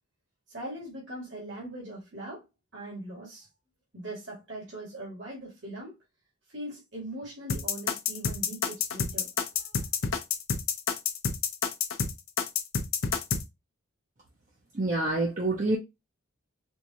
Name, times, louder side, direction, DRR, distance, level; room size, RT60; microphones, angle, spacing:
voice 1, 0.5-2.4 2.7-3.5 3.9-6.0 6.5-9.8, right 1 dB, 60° right, 1.5 m, -41 dB
sound 1, 7.5-13.4, left 6 dB, 75° left, 0.6 m, -28 dB
voice 2, 14.7-15.8, right 2 dB, 40° right, 0.7 m, -27 dB
4.5 x 2.4 x 2.7 m
head